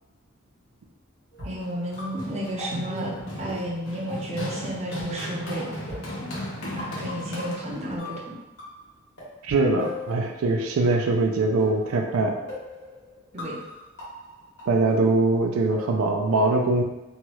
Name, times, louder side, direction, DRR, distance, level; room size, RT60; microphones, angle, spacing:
sound 1, 1.3-4.7 5.0-5.1 5.9-8.9 9.2-10.8 11.6-15.8, left 1 dB, 55° left, 1.4 m, -41 dB
voice 1, 1.4-5.7 6.7-8.3 13.3-13.6, equal, 30° right, -3 dB, 0.5 m, -32 dB
Run, 1.6-8.0, equal, 85° left, 0.8 m, -36 dB
voice 2, 9.4-12.3 14.7-16.8, right 2 dB, 90° right, 2 dB, 0.4 m, -22 dB
2.9 x 2.3 x 2.9 m, 1.0 s
head